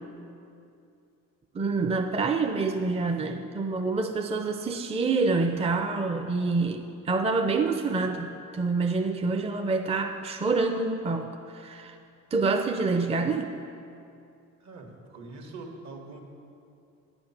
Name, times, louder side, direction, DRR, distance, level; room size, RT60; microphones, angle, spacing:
voice 1, 1.5-12.0 12.3-13.5, right 3 dB, 20° right, 5 dB, 0.5 m, -27 dB
voice 2, 14.6-16.2, right 3 dB, 65° right, 2 dB, 1.7 m, -43 dB
9.6 x 7.9 x 5.8 m, 2.6 s
cardioid pair, 90°, 30 cm